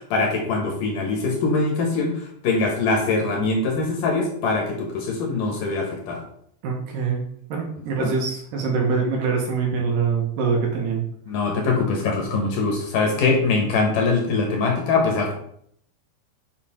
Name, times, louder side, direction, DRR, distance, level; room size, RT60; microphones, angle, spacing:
voice 1, 0.0-2.1 2.4-6.2 8.0-8.1 11.3-15.3, left 3 dB, 65° left, 1 dB, 2.5 m, -22 dB
voice 2, 6.6-7.2 7.5-11.0 13.2-13.4, right 5 dB, 65° right, 0 dB, 2.6 m, -24 dB
7.5 x 5.4 x 4.3 m, 0.67 s
omnidirectional pair, 4.6 m